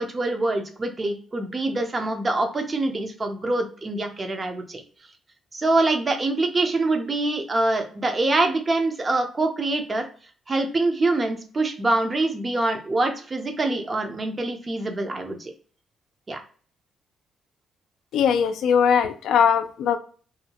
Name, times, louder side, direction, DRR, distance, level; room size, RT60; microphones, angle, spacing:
voice 1, 0.0-4.8 5.5-10.0 10.5-15.5 16.3-16.4, right 2 dB, 30° right, 5 dB, 0.6 m, -25 dB
voice 2, 18.1-20.0, left 7 dB, 80° left, 9 dB, 0.3 m, -20 dB
2.7 x 2.1 x 2.8 m, 0.43 s
cardioid pair, 90°, 0 cm